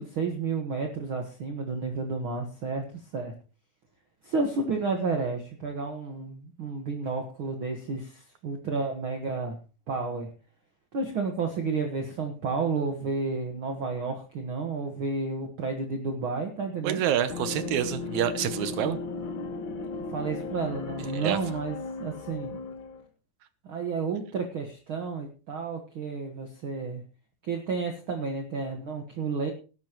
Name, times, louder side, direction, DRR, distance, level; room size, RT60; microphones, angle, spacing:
voice 1, 0.0-3.3 4.2-9.6 9.9-10.3 10.9-17.0 20.1-22.6 23.6-27.0 27.4-29.5, right 4 dB, 50° right, 3 dB, 2.0 m, -31 dB
voice 2, 16.8-19.0 21.1-21.4, right 10 dB, 70° right, 12 dB, 2.2 m, -27 dB
sound 1, 17.3-23.0, left 4 dB, 50° left, 1.8 m, -36 dB
19.0 x 10.5 x 3.0 m, 0.34 s
omnidirectional pair, 3.6 m